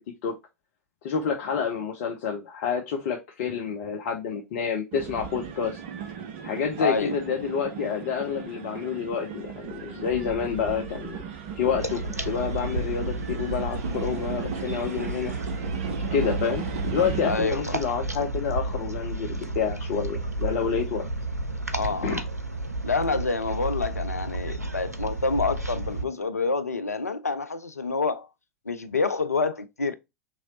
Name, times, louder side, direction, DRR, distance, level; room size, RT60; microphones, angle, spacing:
voice 1, 1.0-5.8 6.4-11.2 11.5-15.3 16.1-21.0 22.0-22.2, left 7 dB, 50° left, 0.7 m, -28 dB
sound 1, 4.9-17.4, right 7 dB, 50° right, 0.7 m, -36 dB
voice 2, 6.8-7.1 17.3-17.8 21.7-22.2 22.8-28.3 28.7-29.9, left 4 dB, 80° left, 0.5 m, -27 dB
sound 2, 11.8-26.0, right 2 dB, 90° right, 0.5 m, -32 dB
3.8 x 3.0 x 2.8 m
figure-of-eight pair, 95°, 8 cm